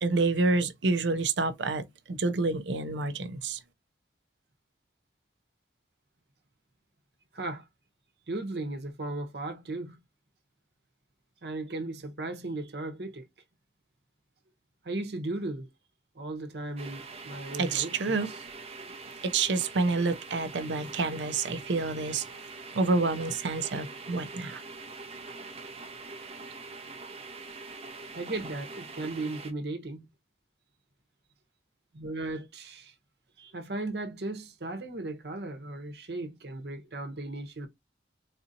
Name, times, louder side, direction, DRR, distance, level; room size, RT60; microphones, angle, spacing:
voice 1, 0.0-3.6 17.6-18.3 19.2-22.2 22.7-24.6, right 3 dB, 90° right, 0.6 m, -28 dB
voice 2, 7.3-7.6 8.3-10.0 11.4-13.2 14.8-15.7 16.1-18.4 28.1-30.0 31.9-32.9 33.4-37.7, right 2 dB, 70° right, 1.0 m, -36 dB
sound 1, 16.8-29.5, right 3 dB, 35° right, 0.6 m, -43 dB
4.1 x 2.7 x 2.5 m
head